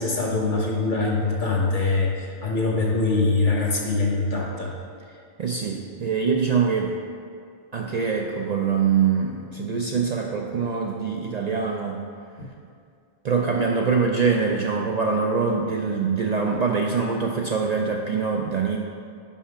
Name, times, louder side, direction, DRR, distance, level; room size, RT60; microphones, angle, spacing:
voice 1, 0.0-4.7 12.4-12.5, left 3 dB, 50° left, -1 dB, 1.1 m, -23 dB
voice 2, 5.4-6.9 7.7-12.0 13.2-18.8, right 5 dB, 55° right, 0 dB, 0.5 m, -24 dB
5.6 x 5.3 x 4.9 m, 2.3 s
omnidirectional pair, 1.0 m